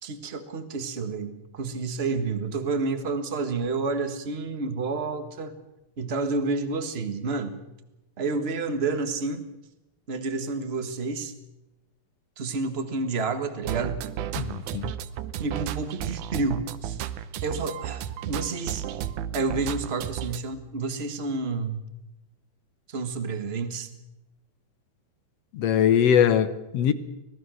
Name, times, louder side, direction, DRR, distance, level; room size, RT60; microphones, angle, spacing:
voice 1, 0.0-5.6 6.0-7.6 8.2-9.4 10.1-11.3 12.4-14.0 15.4-17.0 17.4-18.8 19.3-21.8 22.9-23.9, right 3 dB, 40° right, 0.8 m, -29 dB
sound 1, 13.6-20.4, right 11 dB, 75° right, 2.2 m, -33 dB
voice 2, 14.4-14.9 25.5-26.9, left 9 dB, 65° left, 1.7 m, -22 dB
25.5 x 18.5 x 6.4 m
omnidirectional pair, 3.9 m